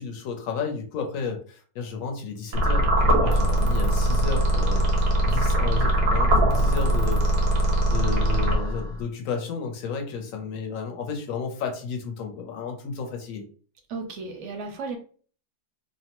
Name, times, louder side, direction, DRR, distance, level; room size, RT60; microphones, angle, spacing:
voice 1, 0.0-7.2 7.5-13.4, left 5 dB, 65° left, 3 dB, 0.9 m, -32 dB
sound 1, 2.5-9.0, right 1 dB, 90° right, 1.3 m, -21 dB
voice 2, 13.9-15.0, right 4 dB, 65° right, 4 dB, 0.8 m, -34 dB
2.8 x 2.1 x 2.9 m, 0.42 s
omnidirectional pair, 1.7 m